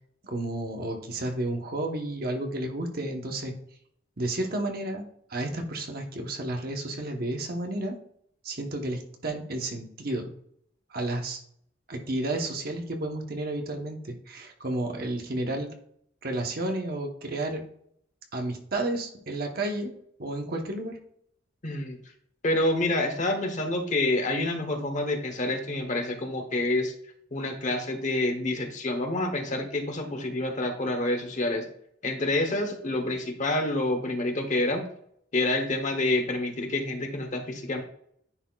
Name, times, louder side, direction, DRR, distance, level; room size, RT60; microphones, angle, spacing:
voice 1, 0.2-3.5 4.2-5.0 5.3-8.0 8.4-10.3 10.9-11.4 11.9-15.7 16.2-17.6 18.3-19.9 20.2-21.0, right 1 dB, 55° right, 3 dB, 1.1 m, -31 dB
voice 2, 21.6-22.0 22.4-26.9 27.3-31.6 32.0-34.9 35.3-37.8, left 2 dB, 40° left, 4 dB, 1.0 m, -28 dB
9.9 x 4.1 x 2.4 m, 0.68 s
head